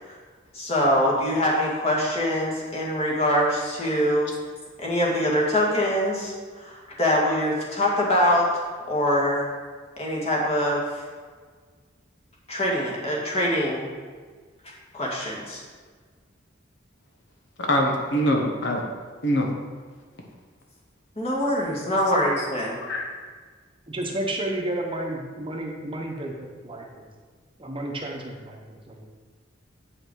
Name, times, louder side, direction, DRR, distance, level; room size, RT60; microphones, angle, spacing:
voice 1, 0.5-4.3 4.8-6.3 6.6-8.5 8.9-9.5 10.0-11.0 12.5-13.9 14.9-15.6 21.2-22.8, equal, 30° left, -4 dB, 2.0 m, -23 dB
voice 2, 17.6-18.9 19.2-19.5 22.8-23.1, equal, 65° left, 1 dB, 1.1 m, -23 dB
voice 3, 23.9-27.1 27.6-29.1, right 1 dB, 25° right, 0 dB, 1.0 m, -32 dB
8.6 x 5.7 x 4.7 m, 1.5 s
head